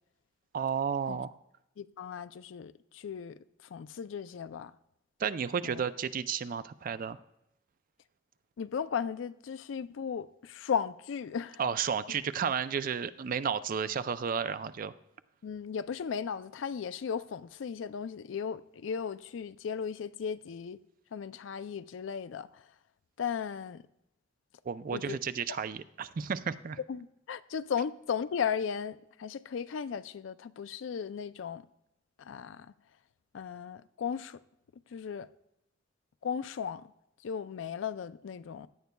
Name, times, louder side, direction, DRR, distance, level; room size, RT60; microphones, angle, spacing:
voice 1, 0.5-1.3 5.2-7.2 11.6-14.9 24.7-26.8, right 7 dB, 45° right, 0.4 m, -32 dB
voice 2, 1.8-4.7 5.6-5.8 8.6-11.6 12.1-12.2 15.4-20.8 21.1-22.7 23.2-23.8 24.9-25.2 26.9-31.6 32.2-32.7 33.3-34.4 34.9-35.3 36.2-36.9 37.2-38.7, left 7 dB, 75° left, 0.4 m, -36 dB
16.0 x 10.5 x 2.2 m
head